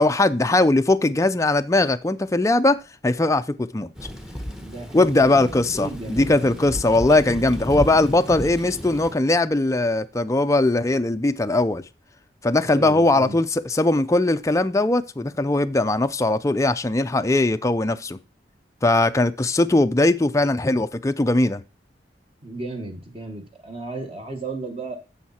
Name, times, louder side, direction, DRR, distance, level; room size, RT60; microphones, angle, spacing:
voice 1, 0.0-2.8 3.0-3.9 4.9-11.8 12.4-18.2 18.8-21.6, left 2 dB, 15° left, 0.5 m, -20 dB
Thunder / Rain, 4.0-9.1, equal, 5° right, 1.0 m, -34 dB
voice 2, 4.5-5.5 5.7-6.7 12.7-13.4 22.4-25.0, right 2 dB, 35° right, 1.7 m, -34 dB
10.5 x 7.3 x 4.3 m
head